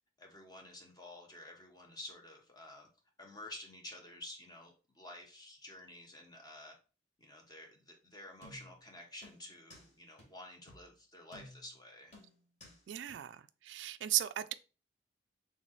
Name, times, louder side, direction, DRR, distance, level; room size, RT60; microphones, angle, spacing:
voice 1, 0.2-2.9 3.2-6.7 7.2-12.1, left 1 dB, 20° left, 1.0 m, -51 dB
sound 1, 8.4-8.8 9.2-9.9 10.2-10.3 10.7-10.9 11.3-11.8 12.1-12.8 13.1-13.2, left 1 dB, 40° left, 1.7 m, -55 dB
voice 2, 12.9-14.5, right 14 dB, 75° right, 0.3 m, -36 dB
3.7 x 3.1 x 4.0 m
head